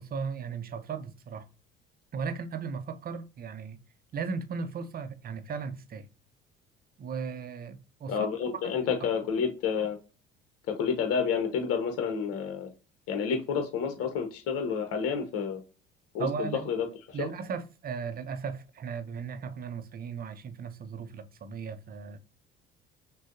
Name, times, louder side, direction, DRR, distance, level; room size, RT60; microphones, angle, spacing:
voice 1, 0.0-1.5 2.1-3.8 4.1-6.1 7.0-8.2 8.6-8.8 16.2-16.7 17.1-22.2, right 5 dB, 30° right, 0.7 m, -36 dB
voice 2, 8.1-10.0 10.7-12.7 13.1-15.6 16.1-17.3, left 6 dB, 50° left, 1.0 m, -30 dB
6.1 x 2.3 x 2.6 m
figure-of-eight pair, 55°, 29 cm